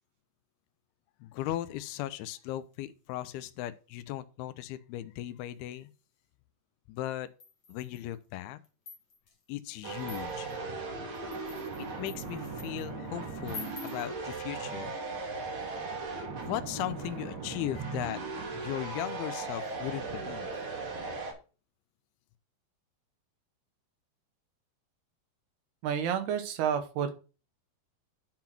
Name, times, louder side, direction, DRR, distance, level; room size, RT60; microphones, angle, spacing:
voice 1, 1.2-5.9 6.9-7.3 7.7-8.6 9.5-10.5 11.8-14.9 16.4-20.5, left 13 dB, 85° left, 2.5 m, -37 dB
sound 1, 7.4-8.1 8.6-9.3 10.0-10.5 11.1-12.9 13.4-14.1, left 3 dB, 60° left, 1.1 m, -47 dB
sound 2, 9.8-21.3, right 4 dB, 50° right, 3.4 m, -38 dB
voice 2, 25.8-27.1, right 8 dB, 85° right, 3.2 m, -30 dB
10.5 x 3.9 x 5.9 m
omnidirectional pair, 4.5 m